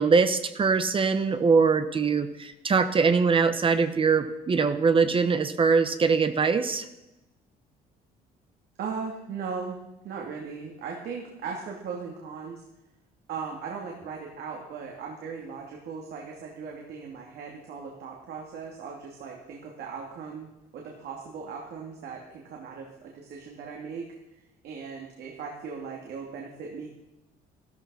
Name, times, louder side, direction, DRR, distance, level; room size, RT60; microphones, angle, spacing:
voice 1, 0.0-6.9, right 5 dB, 30° right, 10 dB, 1.0 m, -22 dB
voice 2, 8.8-9.8 10.0-12.6 13.3-20.5 20.7-22.9 23.1-24.1 24.6-26.9, right 5 dB, 70° right, -1 dB, 2.7 m, -38 dB
13.5 x 13.0 x 5.7 m, 0.95 s
cardioid pair, 110°, 17 cm